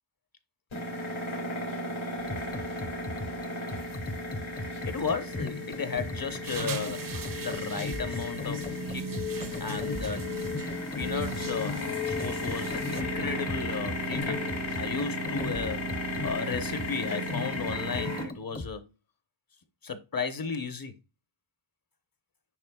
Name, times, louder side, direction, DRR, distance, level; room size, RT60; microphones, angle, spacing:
sound 1, 0.7-18.2, left 1 dB, 85° left, 2.2 m, -34 dB
sound 2, 2.2-18.7, left 2 dB, 20° left, 0.6 m, -38 dB
voice 1, 4.9-7.1 7.4-9.1 9.6-10.4 11.0-14.4 14.7-15.9 16.2-18.9 19.8-20.9, left 5 dB, 50° left, 1.0 m, -34 dB
sound 3, 6.4-13.0, right 6 dB, 45° right, 0.6 m, -43 dB
10.5 x 4.1 x 2.3 m
wide cardioid pair, 90°, 45 cm